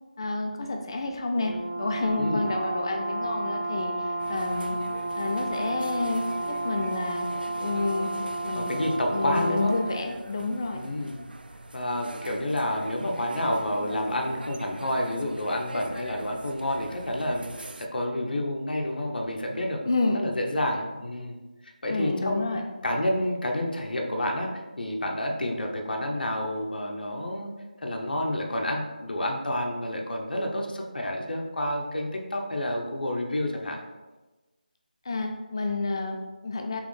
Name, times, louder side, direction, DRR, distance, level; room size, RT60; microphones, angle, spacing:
voice 1, 0.2-4.8 5.2-7.3 7.6-8.1 8.4-8.7 9.1-10.8 19.8-20.2 21.9-22.6 35.1-36.8, left 2 dB, 30° left, 3 dB, 0.5 m, -29 dB
Brass instrument, 1.3-10.1, right 2 dB, 45° right, 0.7 m, -32 dB
voice 2, 2.2-2.5 8.6-9.7 10.7-11.2 11.7-19.9 20.1-21.4 21.8-24.5 24.8-27.5 27.8-33.8, left 1 dB, 75° left, 1 dB, 0.7 m, -29 dB
sound 1, 4.2-17.9, right 2 dB, 80° right, 0.4 m, -43 dB
4.2 x 3.2 x 3.2 m, 1.2 s
figure-of-eight pair, 170°, 5 cm